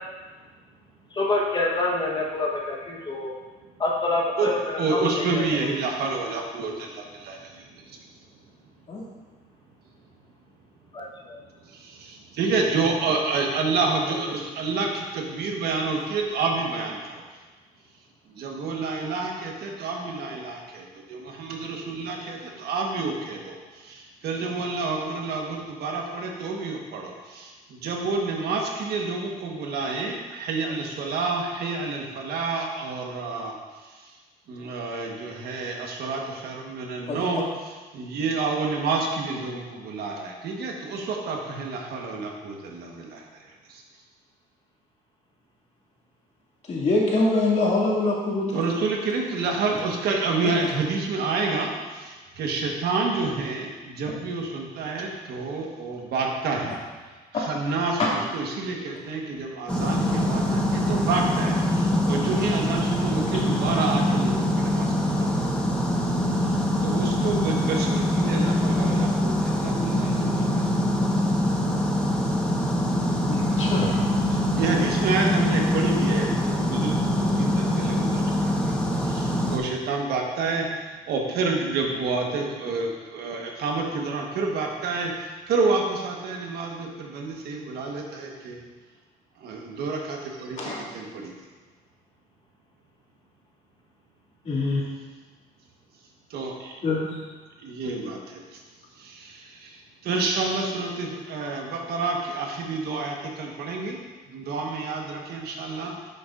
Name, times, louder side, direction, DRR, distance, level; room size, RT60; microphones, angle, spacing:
voice 1, 1.1-3.3 3.8-5.4 10.9-11.4 14.1-14.2, left 2 dB, 25° left, -2 dB, 1.2 m, -27 dB
voice 2, 4.8-7.6 11.8-17.0 18.3-23.6 23.8-33.5 34.5-37.5 37.9-43.2 48.5-56.8 57.3-65.3 66.8-70.6 74.3-78.2 79.1-80.7 81.1-88.6 89.4-90.6 90.9-91.3 96.3-96.8 97.6-98.4 99.0-99.8 100.0-104.0 104.3-105.9, right 3 dB, 70° right, 1 dB, 1.3 m, -29 dB
voice 3, 46.7-48.6 58.0-58.1 63.3-63.4 73.3-74.0 90.6-90.8 94.5-94.8 96.8-97.1, left 2 dB, 40° left, -5 dB, 2.3 m, -24 dB
sound 1, 59.7-79.6, left 1 dB, 5° left, 1.2 m, -24 dB
10.0 x 6.8 x 2.5 m, 1.3 s
cardioid pair, 110°, 17 cm